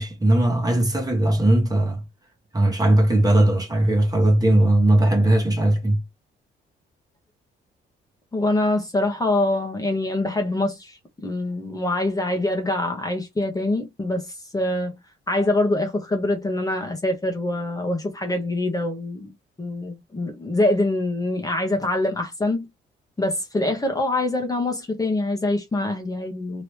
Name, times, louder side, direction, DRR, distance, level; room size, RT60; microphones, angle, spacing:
voice 1, 0.0-2.0 2.5-6.0, right 1 dB, 20° right, 1.5 m, -19 dB
voice 2, 8.3-15.0 15.3-19.2 19.6-22.7 23.2-26.6, left 2 dB, 20° left, 1.1 m, -24 dB
3.0 x 2.8 x 3.3 m
cardioid pair, 90°, 20 cm